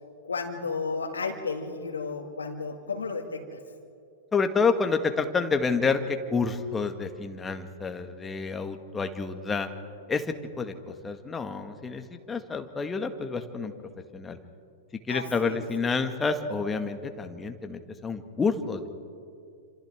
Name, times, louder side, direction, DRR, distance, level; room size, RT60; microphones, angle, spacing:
voice 1, 0.2-3.6 15.1-15.6, left 4 dB, 80° left, 3 dB, 2.1 m, -33 dB
voice 2, 4.3-9.7 10.1-10.3 10.6-13.7 14.1-14.4 15.1-18.9, left 4 dB, 15° left, 6 dB, 1.8 m, -29 dB
28.5 x 27.0 x 3.7 m, 2.4 s
figure-of-eight pair, 100°, 0 cm